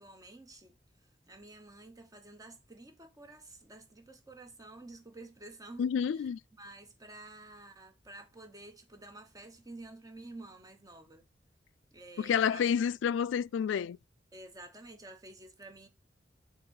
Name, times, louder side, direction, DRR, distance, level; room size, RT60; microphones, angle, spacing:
voice 1, 0.0-5.9 6.2-11.3 11.9-12.6 14.3-15.9, right 2 dB, 20° right, 1.0 m, -51 dB
voice 2, 5.8-6.4 12.2-14.0, left 7 dB, 80° left, 0.3 m, -29 dB
6.6 x 3.0 x 5.6 m
head